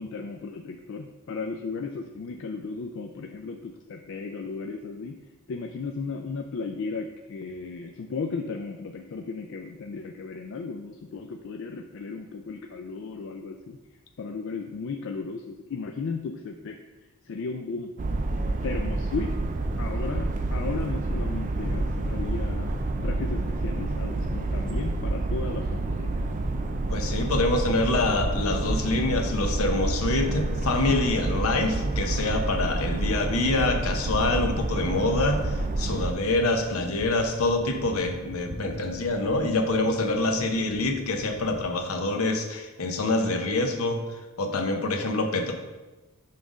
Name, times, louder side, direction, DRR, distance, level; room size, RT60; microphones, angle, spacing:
voice 1, 0.0-5.1 5.5-13.8 14.2-16.8 17.2-17.9 18.6-19.3 19.8-26.2, left 4 dB, 55° left, 4 dB, 0.3 m, -35 dB
sound 1, 18.0-36.1, right 2 dB, 35° right, 0.4 m, -28 dB
voice 2, 26.9-44.0 44.4-45.5, left 2 dB, 75° left, 4 dB, 0.8 m, -26 dB
sound 2, 33.3-41.7, right 1 dB, 60° right, 0.9 m, -43 dB
5.7 x 3.6 x 5.1 m, 1.2 s
head